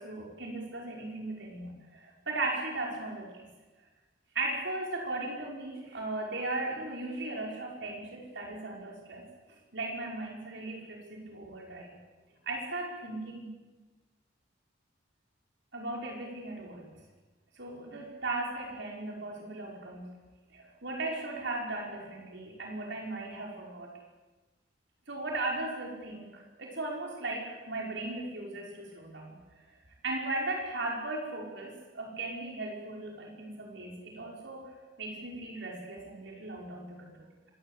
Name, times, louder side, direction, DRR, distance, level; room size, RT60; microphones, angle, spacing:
voice 1, 0.0-3.5 4.3-9.2 9.7-12.0 12.4-13.6 15.7-16.9 17.6-20.1 20.5-23.9 25.1-29.4 30.0-37.5, right 2 dB, 65° right, -1 dB, 5.9 m, -37 dB
26.0 x 21.5 x 8.5 m, 1.2 s
head